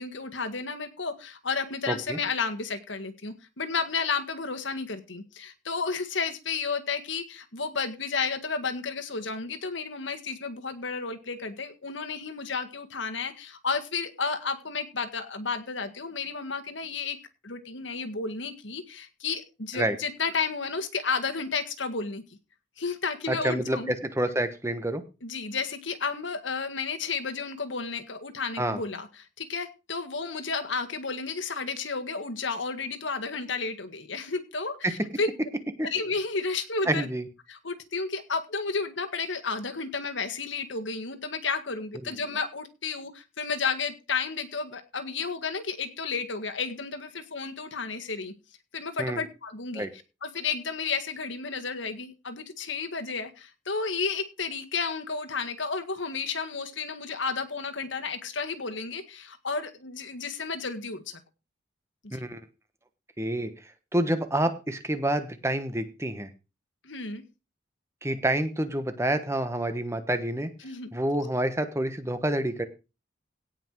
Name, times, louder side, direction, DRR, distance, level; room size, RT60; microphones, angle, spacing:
voice 1, 0.0-17.2 17.4-22.2 22.8-23.9 25.2-35.3 35.9-37.1 37.5-48.3 48.7-49.9 50.2-61.2 62.1-62.2 66.8-67.2 70.6-70.9, left 4 dB, 75° left, 7 dB, 1.8 m, -32 dB
voice 2, 1.9-2.2 19.7-20.0 23.3-25.0 28.6-28.8 34.8-34.9 35.8-35.9 36.9-37.2 49.0-49.2 49.7-49.9 62.1-62.4 63.2-63.5 63.9-66.3 68.0-70.5 70.9-72.6, right 1 dB, 15° right, 9 dB, 1.2 m, -28 dB
17.0 x 5.9 x 4.7 m, 0.29 s
head